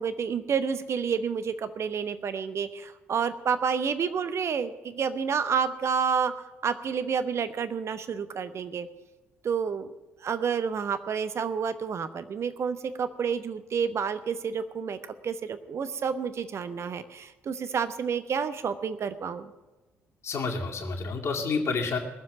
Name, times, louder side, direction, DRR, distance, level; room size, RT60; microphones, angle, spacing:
voice 1, 0.0-6.3 6.6-8.9 9.4-9.9 10.2-15.0 15.2-19.5, right 6 dB, 40° right, 11 dB, 1.0 m, -29 dB
voice 2, 20.2-22.0, left 4 dB, 45° left, 0 dB, 2.2 m, -29 dB
19.0 x 7.3 x 7.6 m, 1.1 s
figure-of-eight pair, 45°, 7 cm